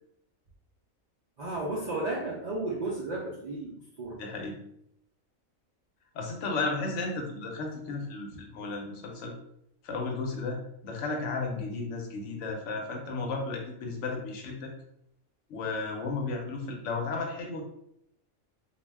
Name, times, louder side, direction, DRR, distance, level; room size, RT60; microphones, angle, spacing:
voice 1, 1.4-4.2, right 2 dB, 80° right, -4 dB, 0.3 m, -33 dB
voice 2, 4.2-4.6 6.1-9.3 9.8-14.7 15.5-17.6, left 3 dB, 70° left, 1 dB, 0.9 m, -34 dB
2.3 x 2.1 x 3.3 m, 0.75 s
omnidirectional pair, 1.4 m